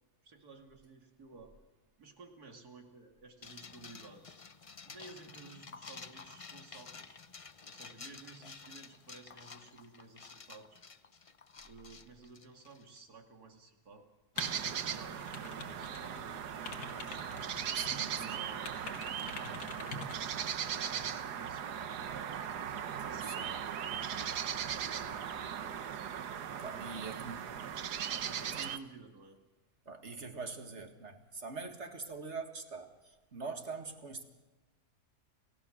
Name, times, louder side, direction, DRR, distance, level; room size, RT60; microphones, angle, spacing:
voice 1, 0.2-1.5 2.0-4.4 4.8-7.2 7.7-10.8 11.6-14.1 14.6-17.4 18.1-22.4 23.1-23.5 24.1-25.5 26.9-27.8 28.2-29.4, right 3 dB, 75° right, 3 dB, 3.0 m, -54 dB
sound 1, 3.4-13.0, left 5 dB, 40° left, 0.5 m, -51 dB
sound 2, 14.4-16.2 16.5-18.2 18.6-20.2, left 4 dB, 90° left, 2.5 m, -45 dB
sound 3, 14.4-28.8, right 8 dB, 90° right, 1.6 m, -38 dB
voice 2, 17.8-18.5 23.0-23.6 26.6-27.4 28.5-28.7 29.9-34.2, right 4 dB, 45° right, 6 dB, 2.2 m, -44 dB
29.0 x 17.0 x 6.5 m, 1.2 s
omnidirectional pair, 1.7 m